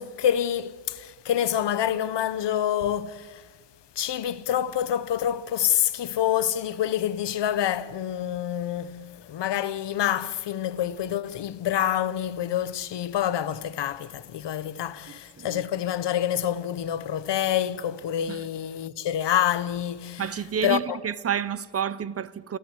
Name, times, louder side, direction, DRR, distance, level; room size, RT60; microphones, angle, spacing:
voice 1, 0.0-3.4 4.0-20.2 20.6-21.0, left 10 dB, 55° left, 0.9 m, -27 dB
voice 2, 20.2-22.6, right 8 dB, 30° right, 0.5 m, -30 dB
28.5 x 14.0 x 8.7 m
wide cardioid pair, 170°, 49 cm